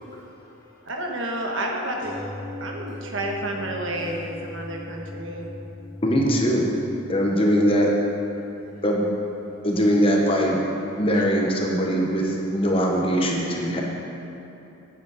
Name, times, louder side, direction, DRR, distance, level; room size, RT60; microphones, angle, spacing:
voice 1, 0.0-0.9 3.5-3.7 4.6-5.6 8.4-8.8 9.4-9.6, left 1 dB, 40° left, 1.6 m, -56 dB
voice 2, 0.9-2.2 2.6-5.5, right 1 dB, 65° right, 1.2 m, -30 dB
sound 1, 2.0-11.9 12.2-12.3, left 2 dB, 25° right, 1.7 m, -41 dB
voice 3, 6.0-6.6 7.1-7.9 8.8-9.0 9.6-10.6 10.9-13.8, equal, 25° left, 1.0 m, -21 dB
9.4 x 8.1 x 4.8 m
head